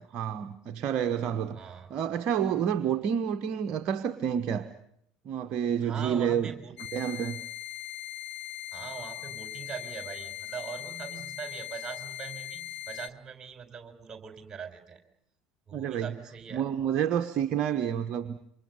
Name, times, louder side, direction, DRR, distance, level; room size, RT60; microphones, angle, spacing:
voice 1, 0.0-4.7 5.2-6.5 6.9-7.4 15.7-16.1 16.5-18.4, right 8 dB, 45° right, 8 dB, 1.2 m, -29 dB
voice 2, 1.5-1.9 5.8-6.7 8.7-15.0 15.7-16.6, right 7 dB, 25° right, 8 dB, 4.7 m, -41 dB
sound 1, 6.8-13.1, left 12 dB, 40° left, 1.3 m, -40 dB
28.0 x 25.5 x 5.3 m, 0.72 s
figure-of-eight pair, 65°, 3 cm